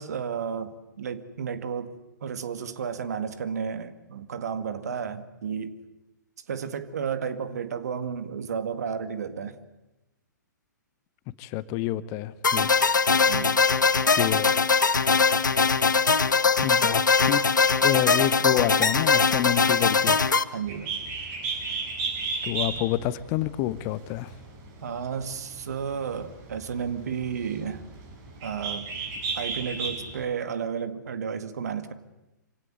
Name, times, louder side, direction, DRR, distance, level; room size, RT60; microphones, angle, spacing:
voice 1, 0.0-1.9 2.2-5.8 6.5-9.6 13.3-13.6 20.2-20.9 24.8-27.8 28.4-28.9 29.3-31.9, right 7 dB, 55° right, 11 dB, 2.0 m, -32 dB
voice 2, 11.4-12.7 14.1-14.5 16.6-17.4 17.8-20.3 22.4-24.3, left 15 dB, 30° left, 17 dB, 0.8 m, -28 dB
sound 1, 12.4-20.4, left 5 dB, 75° left, 1.1 m, -21 dB
Bird, 20.6-30.2, right 4 dB, 30° right, 6.0 m, -34 dB
25.5 x 17.0 x 9.7 m, 0.99 s
figure-of-eight pair, 120°, 10 cm